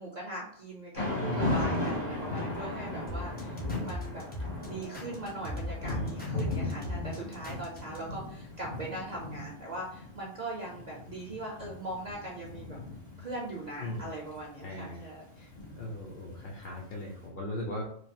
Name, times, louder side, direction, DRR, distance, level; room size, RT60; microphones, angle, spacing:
voice 1, 0.0-4.2 4.6-12.8 13.2-15.2, right 2 dB, 55° right, -3 dB, 0.5 m, -40 dB
Thunder / Rain, 0.9-17.0, left 2 dB, 85° left, 1.6 m, -37 dB
voice 2, 1.1-1.5 5.8-6.3 13.8-14.1 14.6-15.0 15.4-17.8, left 1 dB, 55° left, -2 dB, 0.6 m, -38 dB
sound 1, 3.1-8.0, left 1 dB, 15° left, 0.4 m, -38 dB
3.1 x 2.2 x 2.6 m, 0.64 s
omnidirectional pair, 1.3 m